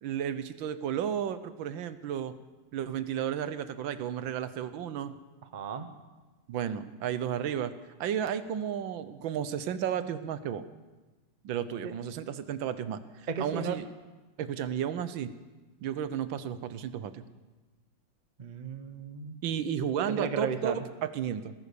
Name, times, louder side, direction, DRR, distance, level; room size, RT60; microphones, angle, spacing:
voice 1, 0.0-2.3 2.7-5.1 6.5-7.7 8.0-10.6 11.4-13.0 13.4-13.9 14.4-15.3 15.8-17.2 19.4-21.5, right 9 dB, 80° right, 12 dB, 1.5 m, -33 dB
voice 2, 5.5-5.9 11.8-11.9 13.3-13.8 18.4-19.4 20.0-20.8, right 6 dB, 40° right, 9 dB, 0.6 m, -34 dB
18.0 x 11.0 x 6.9 m, 1.2 s
omnidirectional pair, 2.1 m